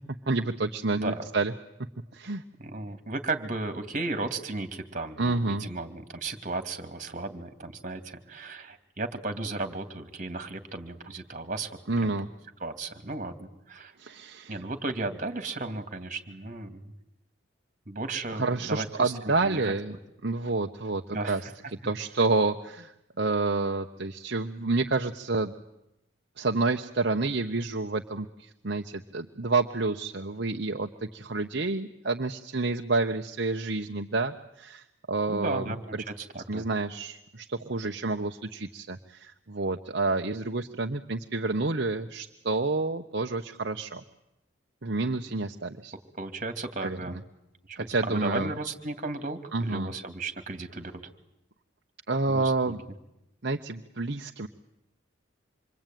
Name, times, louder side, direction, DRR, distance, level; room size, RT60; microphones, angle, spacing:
voice 1, 0.3-1.5 2.1-2.4 5.2-5.6 11.9-12.3 14.0-14.6 18.3-20.0 20.2-21.4 21.8-25.5 26.4-36.0 36.5-44.0 44.8-45.9 46.8-47.0 47.7-48.5 49.5-49.9 52.1-52.8 53.4-54.5, right 3 dB, 60° right, 3 dB, 1.1 m, -29 dB
voice 2, 0.9-1.2 2.6-12.2 12.6-13.9 14.5-16.9 17.9-19.1 19.4-19.7 21.1-21.5 35.3-35.8 36.1-36.7 46.1-47.2 47.7-51.0 52.3-52.7, right 2 dB, 40° right, 8 dB, 2.7 m, -35 dB
27.0 x 24.0 x 9.2 m, 0.86 s
head